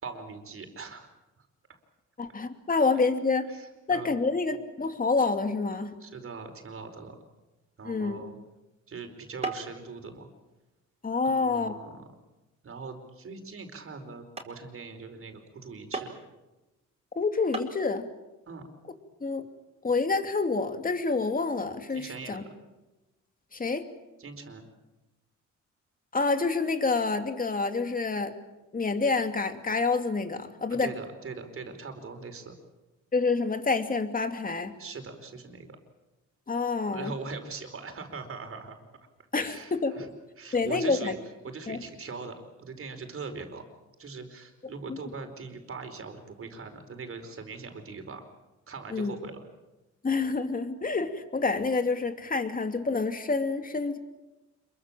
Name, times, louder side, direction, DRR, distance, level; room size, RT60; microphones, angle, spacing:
voice 1, 0.0-1.1 3.5-4.1 6.0-7.1 7.8-8.4 8.9-10.3 11.2-12.0 12.6-16.1 18.5-18.7 21.9-22.5 24.2-24.6 30.7-32.5 34.8-35.8 36.9-38.8 39.3-40.0 40.4-41.2 41.4-43.6 44.0-48.2 48.7-49.4, right 4 dB, 45° right, 6 dB, 5.0 m, -41 dB
voice 2, 2.2-3.5 3.9-5.9 7.8-8.2 11.0-11.7 17.1-18.1 19.2-19.4 19.8-22.4 23.5-23.8 26.1-28.3 28.7-30.9 33.1-34.7 36.5-37.1 39.3-40.1 40.5-41.1 41.7-41.8 44.9-45.0 48.9-49.1 50.0-54.0, left 4 dB, 30° left, 7 dB, 2.7 m, -28 dB
sound 1, 8.2-8.5 9.4-9.8 10.2-10.6 11.2-11.3 11.9-12.1 12.8-12.9 13.4-13.5 14.0-14.1 14.4-14.6 15.9-16.4 17.2-17.3 17.5-17.8, right 3 dB, 20° right, 5.0 m, -37 dB
27.0 x 23.5 x 7.6 m, 1.1 s
cardioid pair, 90°, 30 cm